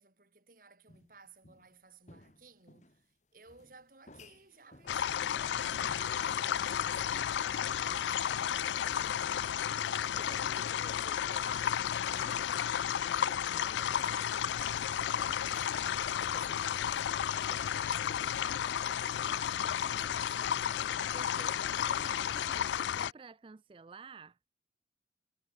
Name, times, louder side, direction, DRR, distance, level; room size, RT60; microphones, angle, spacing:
voice 1, 0.0-9.3 13.7-18.2 18.7-20.9 21.5-22.6, right 4 dB, 50° right, 3.7 m, -58 dB
sound 1, 0.9-1.8 2.1-3.1 3.4-8.4 9.1-9.2 10.4-10.5 11.8-11.9 13.2-13.4 13.8-19.1, left 1 dB, 40° left, 4.1 m, -58 dB
sound 2, 4.9-23.1, left 9 dB, 85° left, 0.3 m, -33 dB
voice 2, 10.1-11.7 12.1-12.6 13.0-14.1 21.1-24.4, right 4 dB, 30° right, 0.4 m, -53 dB
head